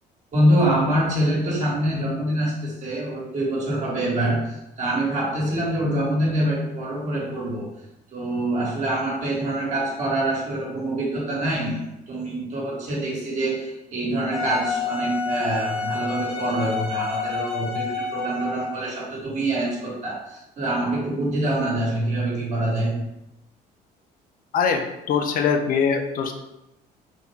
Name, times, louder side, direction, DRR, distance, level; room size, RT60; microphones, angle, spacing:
voice 1, 0.3-7.7 8.1-23.0, right 1 dB, 45° right, -4 dB, 1.2 m, -25 dB
Wind instrument woodwind instrument, 14.3-18.8, left 4 dB, 40° left, 1.0 m, -29 dB
voice 2, 24.5-26.3, left 6 dB, 55° left, 5 dB, 0.5 m, -22 dB
3.5 x 2.1 x 3.3 m, 0.90 s
cardioid pair, 110°, 17 cm